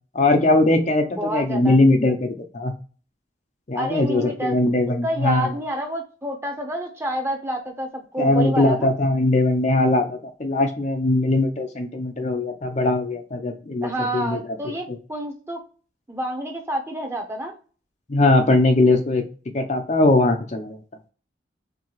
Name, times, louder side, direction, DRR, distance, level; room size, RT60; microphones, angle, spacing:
voice 1, 0.1-2.7 3.7-5.5 8.2-15.0 18.1-19.2 19.5-20.8, left 2 dB, 40° left, 4 dB, 0.6 m, -20 dB
voice 2, 1.1-1.8 3.7-4.6 5.0-8.9 13.8-15.6 16.1-17.5, right 1 dB, 15° right, 3 dB, 0.8 m, -28 dB
4.6 x 3.4 x 3.1 m, 0.37 s
head